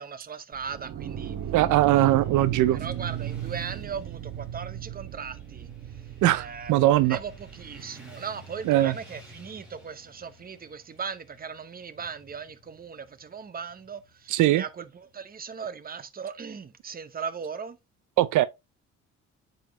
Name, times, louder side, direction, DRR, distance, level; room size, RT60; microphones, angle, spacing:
voice 1, 0.0-1.4 2.3-2.4 2.7-5.7 6.3-17.8, right 6 dB, 30° right, 0.8 m, -38 dB
sound 1, 0.5-7.8, right 10 dB, 60° right, 1.0 m, -36 dB
Motorcycle / Traffic noise roadway noise, 1.2-15.3, right 1 dB, 5° right, 2.9 m, -53 dB
voice 2, 1.5-2.8 6.2-7.2 8.7-8.9 14.3-14.6 18.2-18.5, right 15 dB, 80° right, 0.5 m, -21 dB
8.9 x 4.0 x 3.0 m
cardioid pair, 90°, 30 cm